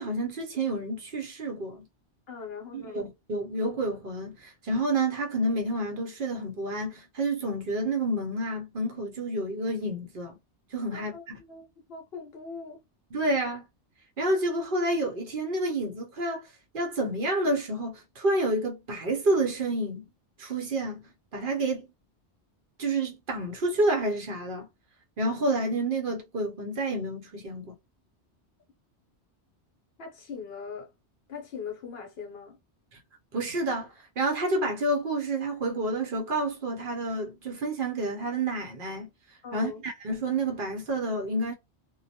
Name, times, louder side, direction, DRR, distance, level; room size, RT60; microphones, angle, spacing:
voice 1, 0.0-1.9 2.7-10.4 10.7-11.2 13.1-13.6 14.2-16.5 16.7-20.1 20.4-21.0 21.3-21.8 22.8-24.7 25.2-27.8 33.3-39.1 39.5-41.5, right 2 dB, 55° right, 0.7 m, -29 dB
voice 2, 2.3-3.0 10.9-11.2 11.5-12.8 30.0-30.9 31.3-32.6 39.4-39.8, left 5 dB, 65° left, 0.9 m, -40 dB
2.2 x 2.0 x 2.7 m
omnidirectional pair, 1.2 m